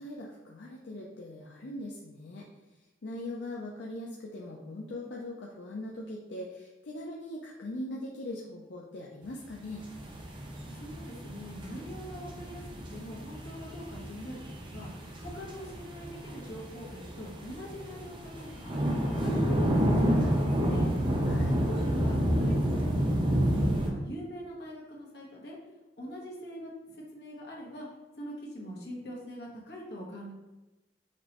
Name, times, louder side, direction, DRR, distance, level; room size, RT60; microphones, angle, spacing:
voice 1, 0.0-2.4 3.0-9.9 21.2-21.6, left 1 dB, 85° left, -2 dB, 0.5 m, -40 dB
sound 1, 9.7-23.9, equal, 30° right, 0.6 m, -30 dB
voice 2, 10.7-12.6 12.9-18.8 19.1-20.9 21.5-25.6 26.0-27.9 28.1-30.3, equal, 65° left, -3 dB, 1.3 m, -43 dB
5.8 x 3.1 x 3.0 m, 1.1 s
head